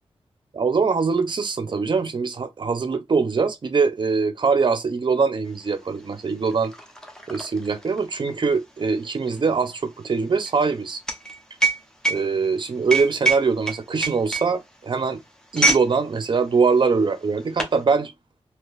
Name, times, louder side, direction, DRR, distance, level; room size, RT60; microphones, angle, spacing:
voice 1, 0.5-6.7 7.3-11.0 12.1-15.2 15.5-18.1, right 4 dB, 45° right, 0.6 m, -22 dB
sound 1, 5.6-5.7 6.0-15.9 16.2-16.5 17.1-17.8, right 3 dB, 5° left, 0.8 m, -26 dB
3.7 x 2.9 x 2.5 m
wide cardioid pair, 125°, 11 cm